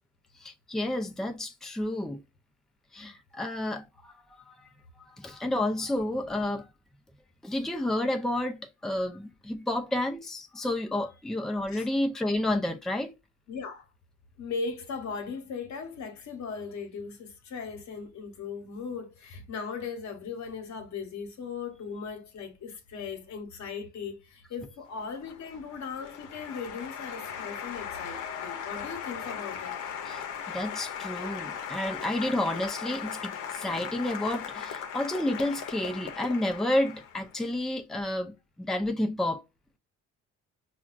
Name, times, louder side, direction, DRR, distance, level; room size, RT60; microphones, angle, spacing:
voice 1, 0.3-2.2 2.9-4.7 5.0-6.7 7.4-13.1 30.1-39.4, left 1 dB, ahead, 0.5 m, -30 dB
voice 2, 13.5-13.9 14.4-29.8, left 5 dB, 65° left, 1.1 m, -38 dB
Applause, 24.9-37.4, left 8 dB, 85° left, 0.7 m, -38 dB
5.0 x 2.3 x 2.4 m
cardioid pair, 90°, 30 cm